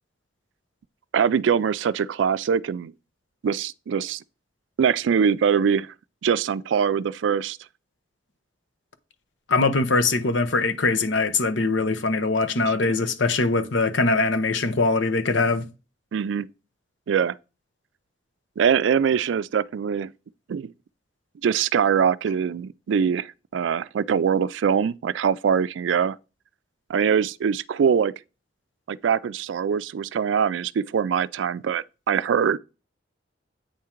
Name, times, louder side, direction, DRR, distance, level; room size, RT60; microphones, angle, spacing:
voice 1, 1.1-2.9 3.4-4.2 4.8-5.9 6.2-7.6 12.6-12.7 16.1-16.5 17.1-17.4 18.6-20.1 20.5-20.7 21.4-26.2 26.9-28.1 28.9-32.6, right 7 dB, 75° right, 0.3 m, -23 dB
voice 2, 9.5-15.7, left 3 dB, 80° left, 0.9 m, -22 dB
8.7 x 3.6 x 4.4 m
head